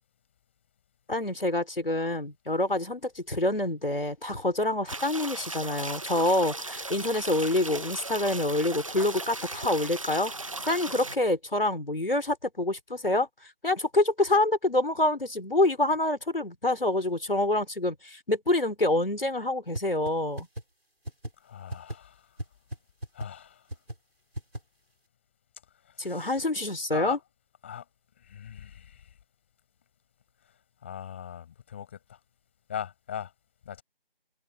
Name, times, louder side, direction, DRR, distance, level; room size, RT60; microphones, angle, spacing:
voice 1, 1.1-10.3 10.6-13.3 13.6-20.5 26.0-27.2, left 2 dB, 65° left, 4.3 m, -27 dB
sound 1, 4.9-11.2, right 2 dB, 35° right, 1.6 m, -37 dB
sound 2, 19.7-19.8 20.1-20.2 20.4-20.6 21.0-21.3 21.7-21.9 22.4-22.5 22.7-22.8 23.0-23.3 23.7-23.9 24.3-24.6, right 1 dB, 85° right, 6.1 m, -34 dB
voice 2, 21.4-22.4 23.1-23.7 25.8-26.4 26.9-27.2 27.6-27.9 28.2-29.2 30.4-32.2 32.7-33.3 33.6-33.8, left 9 dB, 10° left, 6.0 m, -40 dB
figure-of-eight pair, 170°, 30 cm